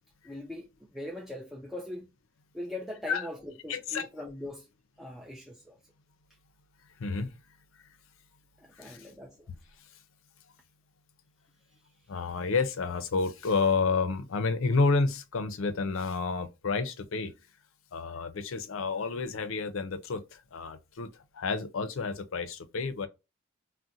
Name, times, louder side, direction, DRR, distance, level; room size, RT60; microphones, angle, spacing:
voice 1, 0.2-2.1 2.5-4.7 5.0-5.8 8.6-9.5, left 1 dB, ahead, 0.3 m, -41 dB
voice 2, 3.7-4.1 7.0-7.3 8.8-9.1 9.5-9.6 12.1-17.3 17.9-23.1, left 4 dB, 70° left, 0.5 m, -30 dB
2.4 x 2.1 x 3.9 m
head